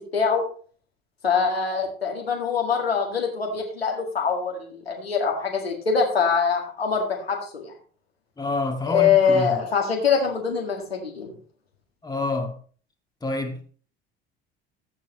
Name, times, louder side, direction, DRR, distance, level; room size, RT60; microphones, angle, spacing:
voice 1, 0.1-0.4 1.2-7.7 8.9-11.3, left 6 dB, 85° left, 1.9 m, -23 dB
voice 2, 8.4-9.6 12.0-12.6 13.2-13.7, left 2 dB, 15° left, 1.9 m, -28 dB
14.0 x 7.3 x 3.0 m
figure-of-eight pair, 60°, 30 cm